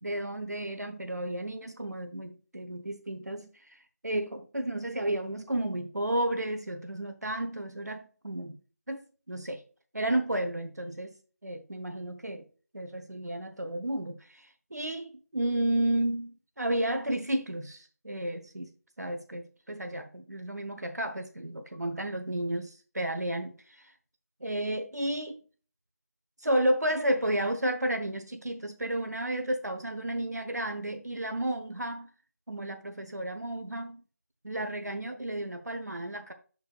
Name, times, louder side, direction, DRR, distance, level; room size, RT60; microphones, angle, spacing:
voice 1, 0.0-8.6 8.9-9.6 9.9-11.1 11.4-12.4 12.7-18.7 19.0-23.9 24.4-25.4 26.4-32.1 32.5-34.0 34.4-36.3, right 1 dB, 80° right, 0.9 m, -32 dB
6.9 x 6.4 x 2.3 m
figure-of-eight pair, 165°, 9 cm